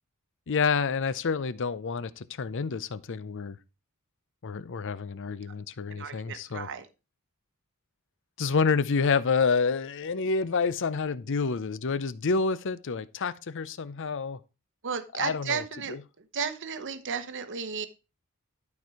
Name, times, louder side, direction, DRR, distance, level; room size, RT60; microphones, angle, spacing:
voice 1, 0.5-3.6 4.4-6.7 8.4-14.4 15.2-15.6 15.9-16.0, left 5 dB, 55° left, 0.6 m, -28 dB
voice 2, 5.9-6.9 14.8-15.9 16.3-17.9, right 6 dB, 55° right, 1.0 m, -33 dB
12.0 x 4.5 x 4.8 m
head